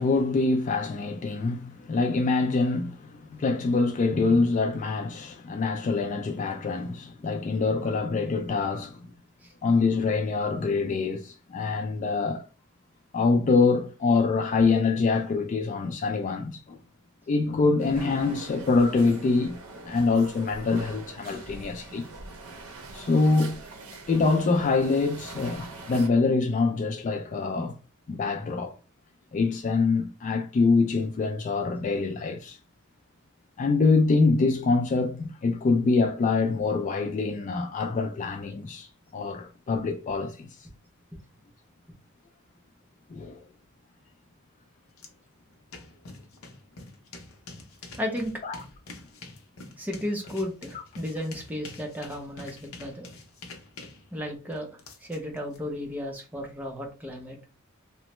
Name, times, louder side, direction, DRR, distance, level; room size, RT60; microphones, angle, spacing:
voice 1, 0.0-9.1 9.6-12.4 13.1-16.8 17.3-19.6 19.8-22.0 22.9-23.6 24.1-27.7 28.1-28.7 29.3-32.6 33.6-38.9 39.1-40.5 43.1-43.4 48.4-48.6, left 4 dB, 35° left, 0.3 m, -25 dB
sound 1, 17.8-26.1, right 3 dB, 85° right, 0.6 m, -43 dB
sound 2, 45.0-45.1 45.4-55.6, left 3 dB, 70° left, 0.6 m, -46 dB
voice 2, 48.0-48.3 49.8-53.1 54.1-54.7 55.0-57.4, left 1 dB, 10° right, 0.6 m, -34 dB
3.0 x 2.1 x 2.9 m
head